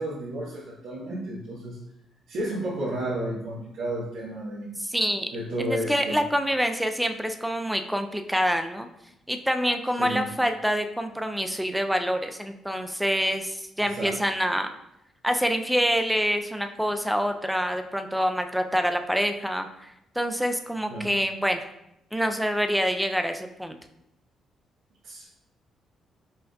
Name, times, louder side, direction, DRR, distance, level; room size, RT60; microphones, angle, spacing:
voice 1, 0.0-1.8 2.3-4.7 5.3-6.2 10.0-10.3 13.9-14.2 20.9-21.2 25.0-25.3, right 1 dB, 75° right, -10 dB, 1.1 m, -32 dB
voice 2, 4.8-5.3 5.6-8.9 9.3-14.7 15.2-19.9 20.2-21.6 22.1-23.8, equal, ahead, 6 dB, 0.3 m, -26 dB
5.6 x 2.5 x 2.3 m, 0.83 s
cardioid pair, 90°, 0 cm